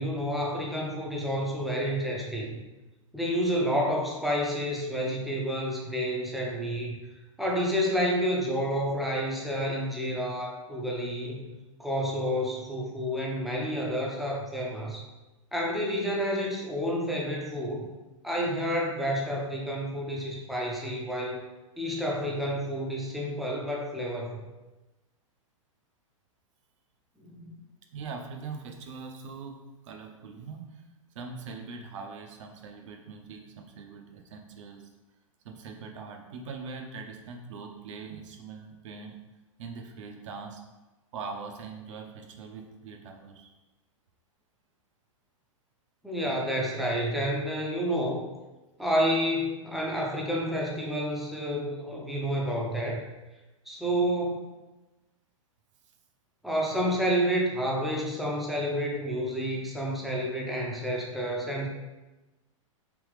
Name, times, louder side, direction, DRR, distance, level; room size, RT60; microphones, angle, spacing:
voice 1, 0.0-2.6 3.1-7.0 7.4-11.5 11.8-15.0 15.5-17.9 18.2-21.4 21.8-24.5 27.2-27.5 46.0-48.3 48.8-53.0 53.7-54.4 56.4-61.7, equal, ahead, -3 dB, 0.6 m, -29 dB
voice 2, 27.9-30.8 31.1-34.9 35.4-39.2 39.6-40.6 41.1-43.5, right 4 dB, 65° right, 3 dB, 0.7 m, -42 dB
3.4 x 3.0 x 3.2 m, 1.1 s
hypercardioid pair, 115°, 17 cm